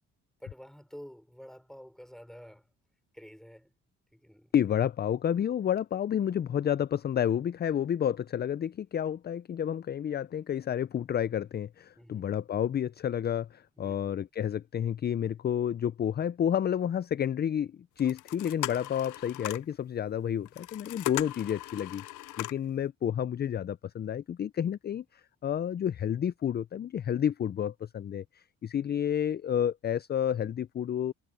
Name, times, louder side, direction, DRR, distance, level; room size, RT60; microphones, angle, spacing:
voice 1, 0.4-2.7 3.1-3.7 4.1-4.6 12.0-12.3 13.8-14.1, equal, ahead, 5.8 m, -49 dB
voice 2, 4.5-22.0 22.4-31.1, left 9 dB, 35° left, 0.4 m, -30 dB
sound 1, 18.0-19.7 20.4-22.7, left 17 dB, 80° left, 0.6 m, -39 dB
cardioid pair, 90°, 30 cm